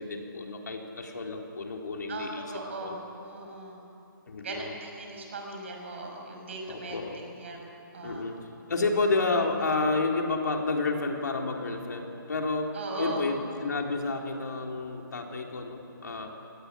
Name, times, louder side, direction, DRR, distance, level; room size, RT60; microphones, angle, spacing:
voice 1, 0.0-2.5 2.8-3.0 4.3-4.7 6.7-7.2 8.0-8.4 8.7-12.7 13.0-16.3, left 3 dB, 55° left, 1 dB, 3.8 m, -30 dB
voice 2, 2.1-3.8 4.4-7.6 7.9-8.3 12.7-13.3, right 2 dB, 35° right, 1 dB, 5.7 m, -38 dB
27.5 x 19.0 x 9.9 m, 2.9 s
hypercardioid pair, 180°, 12 cm